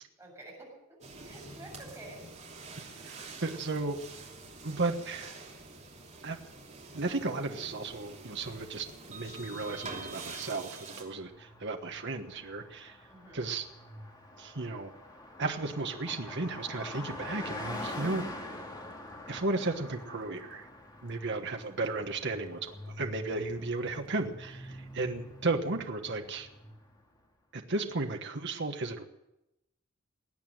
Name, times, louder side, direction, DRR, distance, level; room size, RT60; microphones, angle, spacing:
voice 1, 0.2-2.2 13.1-13.4 21.7-21.9 26.0-26.3, right 1 dB, 15° right, -2 dB, 6.9 m, -50 dB
sound 1, 1.0-11.0, right 3 dB, 35° right, 3.0 m, -46 dB
voice 2, 3.0-4.0 4.6-5.4 6.2-6.4 6.9-13.0 13.3-13.6 14.4-14.9 15.4-18.3 19.3-20.7 21.0-26.5 27.5-29.0, right 3 dB, 60° right, 5 dB, 1.3 m, -34 dB
Car passing by, 11.0-27.0, left 1 dB, 20° left, 2.4 m, -45 dB
20.5 x 9.1 x 7.7 m, 0.91 s
head